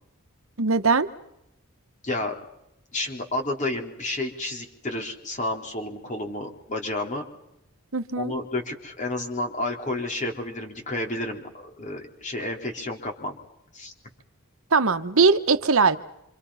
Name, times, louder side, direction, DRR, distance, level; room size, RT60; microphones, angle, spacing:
voice 1, 0.6-1.1 7.9-8.3 14.7-16.0, right 4 dB, 65° right, 10 dB, 1.1 m, -20 dB
voice 2, 2.0-2.3 2.9-7.2 8.2-13.4 13.7-13.9, left 2 dB, 35° left, 3 dB, 3.8 m, -31 dB
27.5 x 27.0 x 5.7 m, 0.82 s
head